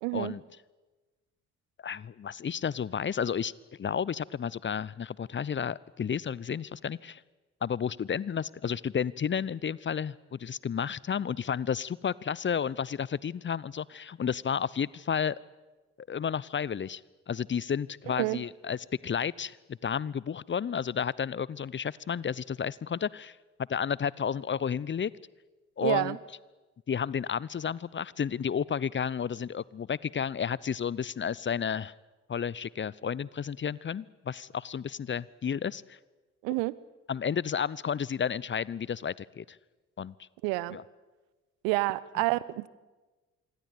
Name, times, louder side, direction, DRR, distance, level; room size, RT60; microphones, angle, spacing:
voice 1, 0.0-0.3 18.1-18.4 25.8-26.2 36.4-36.8 40.4-40.8 41.6-42.7, right 22 dB, 70° right, 21 dB, 1.0 m, -29 dB
voice 2, 1.8-3.5 3.8-7.2 7.6-15.4 16.1-17.0 17.3-19.6 19.8-23.4 23.7-25.1 25.8-26.2 26.9-31.9 32.3-36.0 37.1-39.6 40.0-40.1 40.7-40.8, left 7 dB, 30° left, 23 dB, 0.8 m, -32 dB
26.5 x 23.5 x 8.6 m, 1.2 s
figure-of-eight pair, 45°, 36 cm